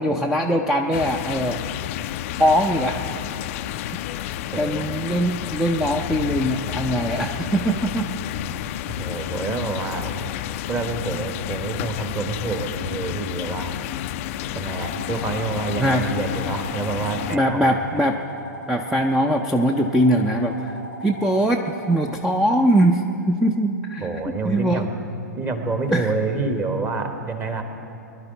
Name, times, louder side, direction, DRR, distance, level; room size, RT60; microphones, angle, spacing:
voice 1, 0.0-1.6 2.4-3.0 4.6-8.1 15.8-16.1 17.3-18.2 18.7-20.7 21.0-24.1 24.4-24.9 25.9-26.1, right 1 dB, 5° right, 4 dB, 0.5 m, -21 dB
sound 1, 0.9-17.4, left 12 dB, 45° left, 0.4 m, -30 dB
voice 2, 4.5-4.9 9.0-10.3 10.7-13.7 14.5-18.0 24.0-24.9 25.4-27.6, right 3 dB, 20° right, 5 dB, 1.3 m, -28 dB
sound 2, 14.7-22.2, left 1 dB, 70° right, 2.1 m, -38 dB
22.5 x 11.5 x 4.0 m, 2.7 s
figure-of-eight pair, 110°, 10 cm